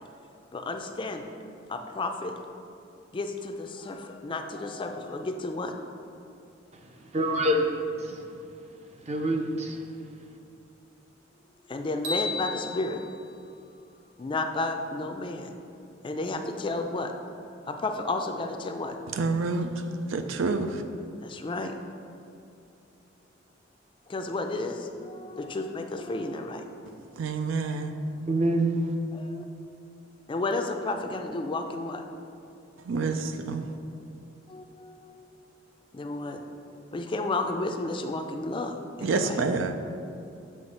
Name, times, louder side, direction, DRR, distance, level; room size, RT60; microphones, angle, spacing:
voice 1, 0.5-1.3 1.7-2.3 3.1-5.8 11.7-13.0 14.2-15.6 16.0-17.1 17.7-18.9 21.2-22.1 24.1-26.7 29.1-29.4 30.3-32.0 33.6-33.8 34.5-35.6 35.9-36.4 36.7-39.4, left 2 dB, 25° left, 5 dB, 0.4 m, -32 dB
voice 2, 7.1-7.6 8.0-8.2 9.1-9.8 28.3-28.8, right 1 dB, 35° right, 3 dB, 0.6 m, -25 dB
sound 1, 12.0-14.3, left 4 dB, 65° right, 1.2 m, -36 dB
voice 3, 19.1-19.7 20.0-20.8 27.2-27.9 32.9-33.7 39.0-39.7, right 4 dB, 85° right, 7 dB, 0.4 m, -28 dB
7.7 x 3.2 x 5.3 m, 2.6 s
head